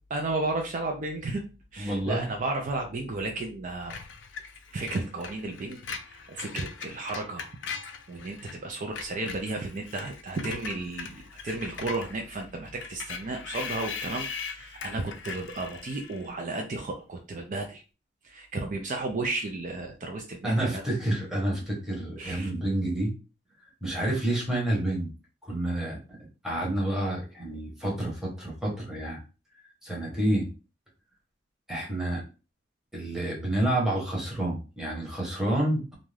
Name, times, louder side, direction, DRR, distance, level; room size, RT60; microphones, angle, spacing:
voice 1, 0.1-1.4 1.7-4.0 4.7-7.5 8.1-17.8 18.2-20.8 22.2-22.5, right 2 dB, 45° right, 3 dB, 0.4 m, -33 dB
voice 2, 1.8-2.3 20.4-23.1 23.8-25.1 25.4-26.0 26.4-29.2 29.8-30.5 31.7-32.2 32.9-35.9, right 1 dB, 5° right, -4 dB, 1.0 m, -29 dB
Screech, 3.9-8.6 8.8-16.3, left 5 dB, 70° left, 0.4 m, -40 dB
2.6 x 2.3 x 3.2 m, 0.32 s
head